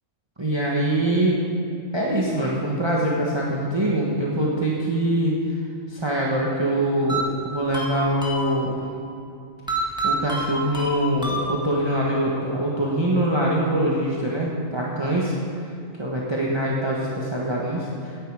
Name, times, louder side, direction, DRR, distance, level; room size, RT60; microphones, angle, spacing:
voice 1, 0.4-1.4 1.9-5.4 5.9-8.8 10.0-15.4 16.0-18.1, right 1 dB, 20° right, -5 dB, 1.4 m, -23 dB
sound 1, 7.1-8.9 9.7-11.9, right 2 dB, 5° right, 1.6 m, -28 dB
17.5 x 10.0 x 4.9 m, 2.5 s
omnidirectional pair, 1.4 m